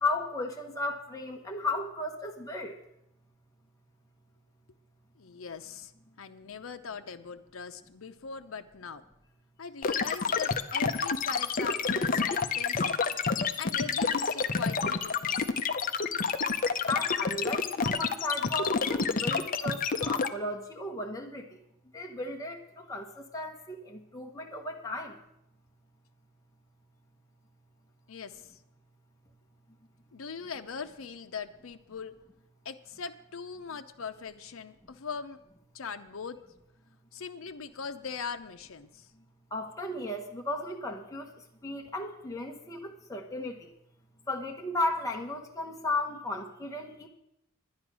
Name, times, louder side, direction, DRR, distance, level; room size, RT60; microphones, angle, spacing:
voice 1, 0.0-2.8 16.9-21.5 21.9-23.1 23.3-25.1 39.5-41.3 41.6-43.6 44.3-47.1, left 2 dB, 15° left, 1 dB, 1.0 m, -35 dB
voice 2, 5.2-5.9 6.2-9.0 9.6-13.0 13.6-15.5 28.1-28.6 30.1-32.1 32.6-35.4 35.7-36.4 37.1-39.1, left 5 dB, 80° left, 7 dB, 0.6 m, -41 dB
sound 1, 9.8-20.3, left 5 dB, 40° left, 0.6 m, -28 dB
10.5 x 10.5 x 6.1 m, 0.80 s
head